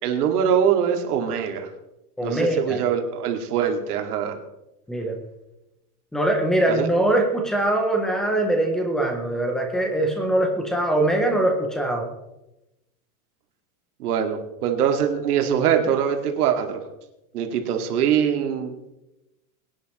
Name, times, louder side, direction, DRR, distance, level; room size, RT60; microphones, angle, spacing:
voice 1, 0.0-1.7 2.2-4.4 6.7-6.9 14.0-16.8 17.3-18.7, right 8 dB, 80° right, 4 dB, 2.2 m, -23 dB
voice 2, 2.2-2.8 4.9-5.1 6.1-12.0, right 1 dB, ahead, 3 dB, 0.4 m, -22 dB
21.0 x 10.0 x 3.0 m, 0.92 s
supercardioid pair, 170°, 45 cm